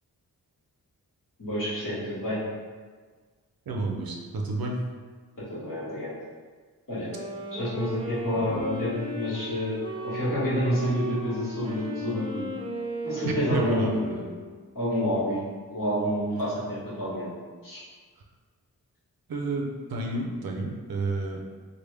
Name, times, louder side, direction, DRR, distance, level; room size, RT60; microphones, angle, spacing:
voice 1, 1.4-2.4 5.5-6.1 6.9-7.1 7.5-9.8 10.0-12.4 13.0-14.0 14.7-15.4 15.7-17.3 17.6-17.8, equal, 55° left, -9 dB, 1.5 m, -28 dB
voice 2, 3.7-4.8 8.5-8.6 13.2-14.3 19.3-21.5, right 2 dB, 70° right, 0 dB, 0.6 m, -30 dB
Wind instrument woodwind instrument, 7.0-14.7, right 1 dB, 15° right, 0.6 m, -36 dB
3.4 x 2.1 x 3.3 m, 1.5 s
wide cardioid pair, 65°, 37 cm